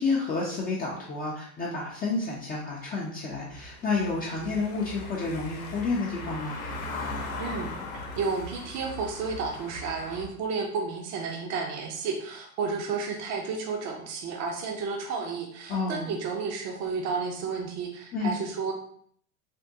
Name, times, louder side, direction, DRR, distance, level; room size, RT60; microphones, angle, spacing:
voice 1, 0.0-6.6 15.7-16.1 18.1-18.4, left 3 dB, 20° left, -4 dB, 0.5 m, -30 dB
Car passing by / Engine, 3.5-10.3, left 2 dB, 75° left, 0.8 m, -39 dB
voice 2, 7.4-18.7, right 4 dB, 40° right, 1 dB, 0.6 m, -32 dB
3.5 x 2.1 x 2.7 m, 0.62 s
hypercardioid pair, 105°, 43 cm